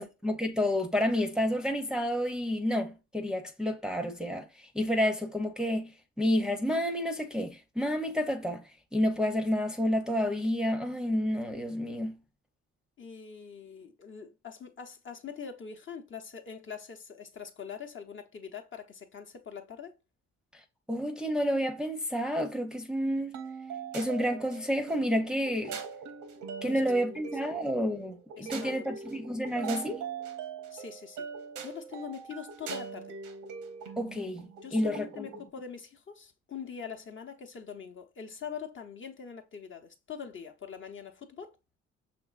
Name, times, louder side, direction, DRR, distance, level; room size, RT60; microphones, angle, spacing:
voice 1, 0.0-12.2 20.5-20.6 20.9-23.4 23.9-25.8 26.6-30.0 34.0-35.3, equal, ahead, 0.6 m, -30 dB
voice 2, 13.0-19.9 26.7-26.8 27.1-27.2 27.5-27.6 28.4-29.2 30.7-31.3 31.6-33.1 34.6-41.6, left 7 dB, 40° left, 0.8 m, -43 dB
sound 1, 23.3-35.5, right 6 dB, 85° right, 0.9 m, -42 dB
6.0 x 3.1 x 2.4 m
cardioid pair, 90°, 30 cm